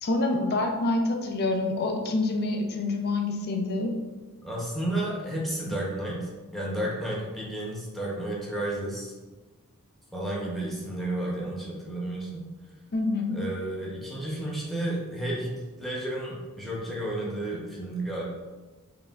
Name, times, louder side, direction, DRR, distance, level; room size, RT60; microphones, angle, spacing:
voice 1, 0.0-3.9 12.9-13.4, left 2 dB, 45° left, 3 dB, 0.5 m, -27 dB
voice 2, 4.4-9.1 10.1-12.5 13.3-18.2, right 1 dB, ahead, -4 dB, 0.9 m, -32 dB
4.8 x 3.2 x 2.4 m, 1.2 s
head